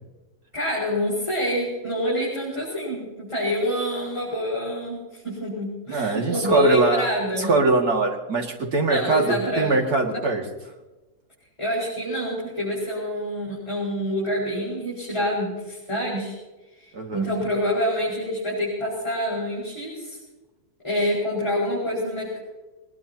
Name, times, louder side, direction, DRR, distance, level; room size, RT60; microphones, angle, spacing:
voice 1, 0.5-7.6 8.9-9.8 10.1-10.2 11.6-16.3 16.8-20.2 20.8-22.4, equal, 20° left, -8 dB, 5.9 m, -27 dB
voice 2, 5.9-7.1 7.4-10.4 16.9-17.2, right 3 dB, 70° right, 1 dB, 2.7 m, -22 dB
23.0 x 20.5 x 2.9 m, 1.2 s
omnidirectional pair, 1.7 m